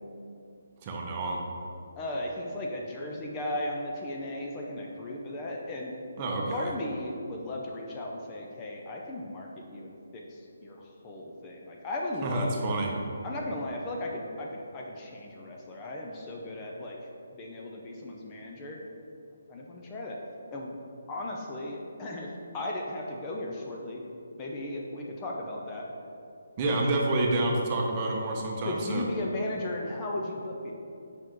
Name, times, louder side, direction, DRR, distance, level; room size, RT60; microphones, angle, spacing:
voice 1, 0.8-1.4 6.2-6.7 12.2-12.9 26.6-29.0, right 2 dB, 30° right, -1 dB, 0.9 m, -28 dB
voice 2, 1.9-5.9 6.5-12.5 13.2-17.0 17.3-18.8 19.5-20.2 20.5-20.8 21.1-22.3 22.5-24.0 24.4-25.9 26.7-26.8 28.6-30.7, left 1 dB, 20° left, -1 dB, 0.6 m, -36 dB
7.5 x 5.1 x 3.1 m, 2.6 s
figure-of-eight pair, 145°, 0 cm